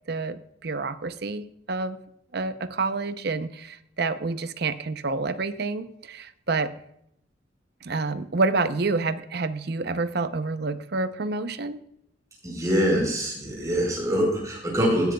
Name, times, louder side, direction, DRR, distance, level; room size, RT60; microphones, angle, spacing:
voice 1, 0.1-2.0 2.3-6.7 7.8-11.8, right 3 dB, 55° right, 12 dB, 0.6 m, -28 dB
voice 2, 12.4-15.1, equal, 15° right, -1 dB, 4.8 m, -24 dB
17.5 x 10.0 x 2.3 m, 0.75 s
head